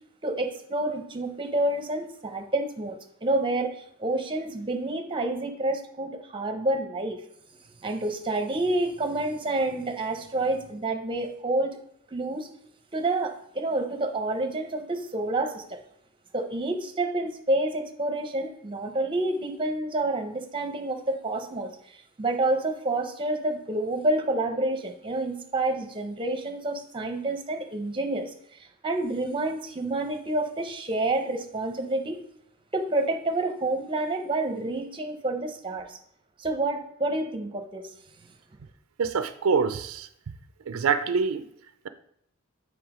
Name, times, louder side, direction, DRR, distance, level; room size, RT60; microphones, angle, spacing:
voice 1, 0.2-3.0 3.2-7.2 7.8-11.8 12.1-12.5 12.9-15.8 16.3-21.7 22.2-28.3 28.8-32.2 32.7-36.0 36.4-37.8, right 2 dB, 25° right, 5 dB, 0.7 m, -28 dB
voice 2, 39.0-40.1 40.7-41.4, right 5 dB, 90° right, 11 dB, 0.4 m, -25 dB
7.1 x 3.3 x 4.9 m, 0.72 s
head